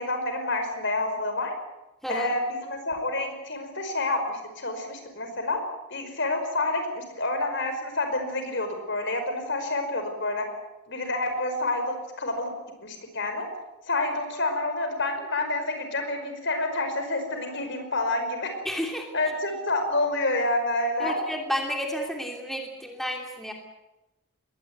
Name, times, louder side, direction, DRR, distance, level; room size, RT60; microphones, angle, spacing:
voice 1, 0.0-1.5 2.1-5.6 5.9-10.4 10.9-12.5 12.8-13.5 13.9-18.5 19.1-21.2, left 2 dB, 55° left, 6 dB, 5.1 m, -28 dB
voice 2, 18.6-19.1 21.0-23.5, equal, ahead, 1 dB, 2.9 m, -31 dB
21.5 x 18.5 x 9.4 m, 0.97 s
head